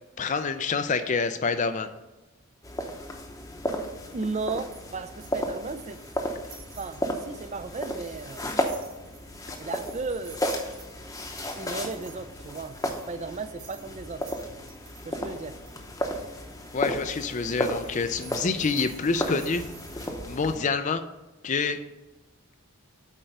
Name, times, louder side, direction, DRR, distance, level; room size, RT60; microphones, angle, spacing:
voice 1, 0.2-1.9 16.7-19.6 20.3-21.0 21.4-21.8, left 4 dB, 35° left, 10 dB, 0.4 m, -27 dB
sound 1, 2.6-20.6, equal, 15° left, 0.8 m, -34 dB
voice 2, 4.1-6.0 6.8-8.5 9.6-10.5 11.6-12.8 13.1-14.3 15.1-15.6, right 3 dB, 30° right, 11 dB, 0.4 m, -35 dB
sound 2, 4.1-15.1 15.7-20.4, right 6 dB, 70° right, 2.5 m, -52 dB
8.6 x 4.4 x 6.5 m, 1.1 s
head